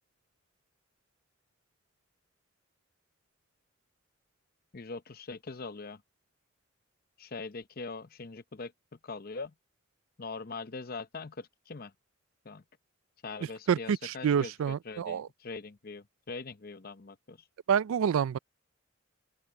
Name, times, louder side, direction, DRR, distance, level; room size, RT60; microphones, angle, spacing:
voice 1, 4.7-6.0 7.2-8.7 9.0-9.5 10.2-11.9 12.4-12.6 13.2-17.4, left 4 dB, 45° left, 0.7 m, -42 dB
voice 2, 13.7-15.3 17.7-18.4, right 7 dB, 85° right, 0.4 m, -27 dB
open air
head